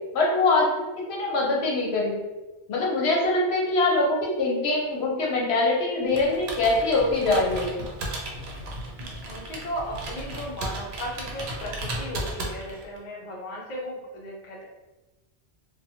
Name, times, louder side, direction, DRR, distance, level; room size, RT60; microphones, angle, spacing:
voice 1, 0.1-0.7 1.1-2.2 2.7-7.7, left 2 dB, 70° left, -2 dB, 0.9 m, -23 dB
Computer keyboard, 6.1-13.0, right 1 dB, 70° right, 0.8 m, -35 dB
voice 2, 9.0-14.6, equal, 50° left, -2 dB, 0.6 m, -36 dB
2.7 x 2.2 x 2.6 m, 1.1 s
omnidirectional pair, 1.1 m